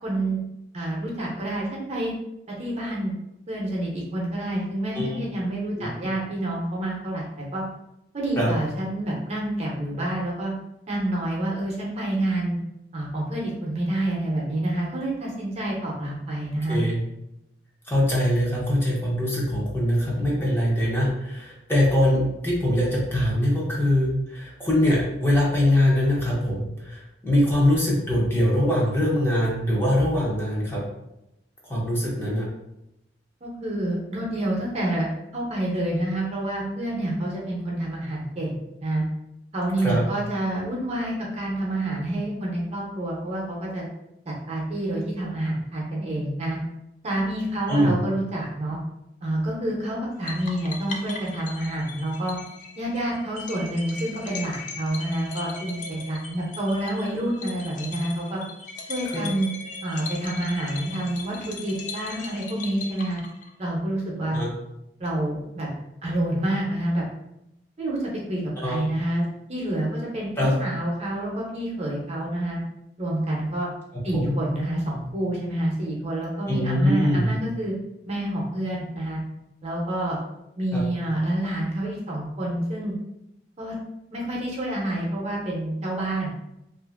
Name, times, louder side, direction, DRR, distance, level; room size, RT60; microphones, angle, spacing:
voice 1, 0.0-0.4 0.7-2.1 2.6-3.1 3.5-7.6 8.1-10.5 10.9-12.6 12.9-16.8 33.4-39.0 39.5-43.9 44.3-46.6 47.0-48.8 49.2-52.4 52.8-58.4 58.9-59.5 59.8-63.2 63.6-64.4 65.0-65.7 66.0-67.0 67.8-72.6 73.0-73.7 74.0-77.7 78.1-79.2 79.6-80.2 80.6-82.9 83.6-83.7 84.1-86.3, right 1 dB, 40° right, -3 dB, 0.7 m, -28 dB
voice 2, 5.8-6.1 8.4-8.5 16.7-17.0 17.9-30.8 31.7-32.5 39.8-40.0 47.7-47.9 59.1-59.3 64.3-64.5 68.6-68.8 70.4-70.5 74.1-74.3 76.5-77.3 80.7-80.8, left 1 dB, 15° left, -6 dB, 0.7 m, -23 dB
sound 1, 50.3-63.7, left 4 dB, 45° left, 0.4 m, -39 dB
2.6 x 2.5 x 2.5 m, 0.84 s
head